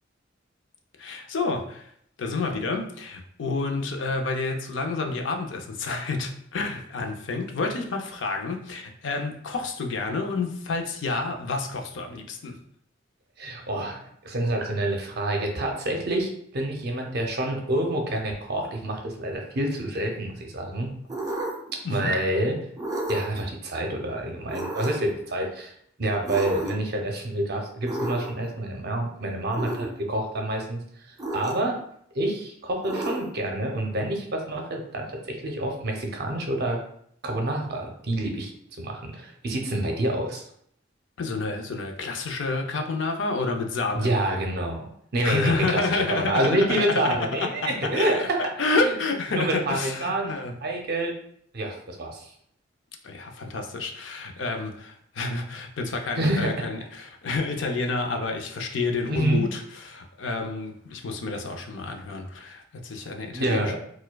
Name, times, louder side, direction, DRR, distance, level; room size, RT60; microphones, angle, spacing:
voice 1, 1.0-1.9 2.2-12.6 21.8-22.2 41.2-44.1 45.2-50.5 53.0-59.6 59.9-63.8, left 3 dB, 70° left, 4 dB, 0.5 m, -29 dB
voice 2, 13.4-20.9 21.9-22.6 23.1-25.7 26.0-31.8 32.1-36.8 37.2-38.5 38.8-40.4 43.9-48.4 48.8-49.0 49.3-50.3 50.6-51.1 51.5-52.3 56.2-56.5 59.1-59.4 63.3-63.8, right 1 dB, 55° right, 2 dB, 0.6 m, -27 dB
sound 1, 21.1-21.8 22.8-23.4 24.5-25.1 26.2-26.9 27.9-28.5 29.5-29.9 31.2-31.8 32.8-33.5, right 2 dB, 20° right, 0.5 m, -32 dB
4.3 x 2.2 x 2.2 m, 0.68 s
head